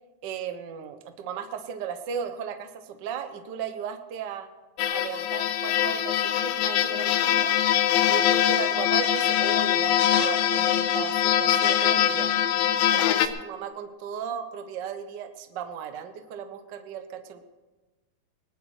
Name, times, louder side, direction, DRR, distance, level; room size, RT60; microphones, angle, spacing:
voice 1, 0.2-4.5 4.9-7.6 8.1-12.3 12.9-17.4, right 7 dB, 85° right, 8 dB, 0.9 m, -36 dB
sound 1, 4.8-13.3, left 11 dB, 90° left, 2.2 m, -23 dB
19.5 x 19.0 x 3.2 m, 1.2 s
omnidirectional pair, 3.4 m